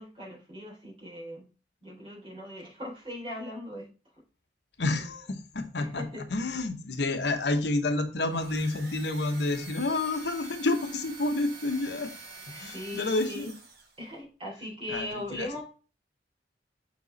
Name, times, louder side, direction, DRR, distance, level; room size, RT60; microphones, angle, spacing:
voice 1, 0.0-1.4 1.8-3.9 5.8-6.2 12.5-13.5 14.0-15.6, left 1 dB, 30° right, -4 dB, 4.0 m, -39 dB
voice 2, 4.8-6.0 6.3-12.1 12.6-13.5 14.9-15.5, left 2 dB, 70° left, 7 dB, 0.9 m, -29 dB
sound 1, 8.2-14.0, right 3 dB, 55° right, 1.6 m, -46 dB
6.5 x 4.6 x 4.0 m, 0.36 s
head